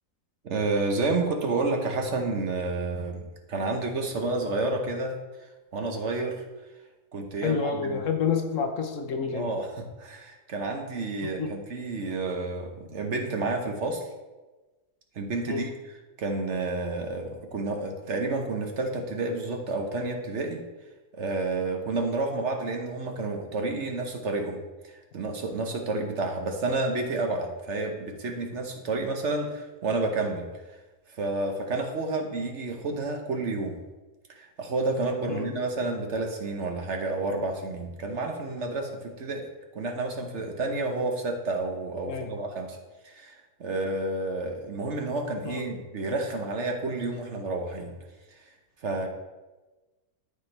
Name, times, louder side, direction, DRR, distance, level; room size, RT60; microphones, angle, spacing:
voice 1, 0.4-5.1 5.7-6.4 7.1-8.0 9.3-14.1 15.1-15.7 16.2-20.6 21.1-30.5 31.1-33.8 34.4-39.4 39.7-42.8 43.0-48.0 48.3-48.4 48.8-49.1, right 3 dB, 55° right, 3 dB, 1.1 m, -30 dB
voice 2, 7.4-9.5 11.4-11.5 15.5-15.6 35.3-35.5 42.1-42.3 45.4-45.6, left 6 dB, 65° left, 5 dB, 1.1 m, -28 dB
13.0 x 4.4 x 3.3 m, 1.2 s
omnidirectional pair, 1.6 m